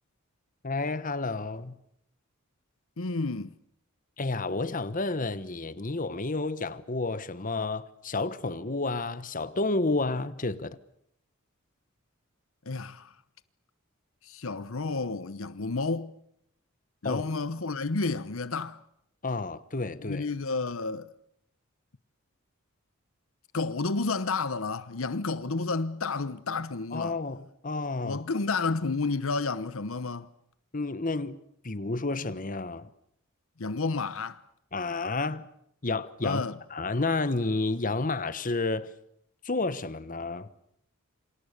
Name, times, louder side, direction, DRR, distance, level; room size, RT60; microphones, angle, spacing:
voice 1, 0.6-1.8 4.2-10.8 17.0-17.2 19.2-20.3 26.9-28.2 30.7-31.4 31.6-32.9 34.7-35.5 35.8-36.4 36.7-38.9 39.4-40.5, left 3 dB, 40° left, 1.2 m, -30 dB
voice 2, 3.0-3.5 12.7-13.1 14.2-16.1 17.0-18.8 20.0-21.1 23.5-27.2 28.0-30.3 33.6-34.4 36.2-36.6, left 3 dB, 70° left, 1.0 m, -31 dB
28.0 x 26.5 x 6.8 m
head